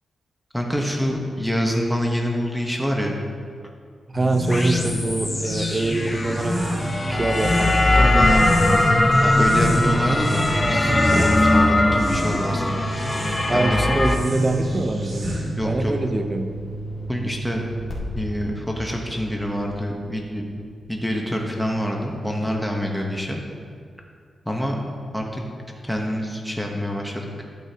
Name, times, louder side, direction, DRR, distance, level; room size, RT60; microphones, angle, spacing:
voice 1, 0.5-3.2 8.0-8.6 9.2-13.2 13.5-13.8 15.6-15.9 17.1-17.6 18.1-20.4 20.9-23.4 24.4-24.8 25.1-25.4 25.9-27.3, equal, ahead, 0 dB, 1.0 m, -26 dB
sound 1, 4.1-20.5, right 2 dB, 55° left, 2.1 m, -33 dB
voice 2, 4.1-6.6 7.1-8.3 9.6-10.0 13.5-15.4 15.6-16.5, right 2 dB, 25° right, 6 dB, 0.8 m, -24 dB
sound 2, 4.2-15.7, equal, 50° right, 2.5 m, -29 dB
sound 3, 4.5-14.2, left 2 dB, 20° left, 0.7 m, -21 dB
12.0 x 9.4 x 2.9 m, 2.1 s
wide cardioid pair, 120°, 0 cm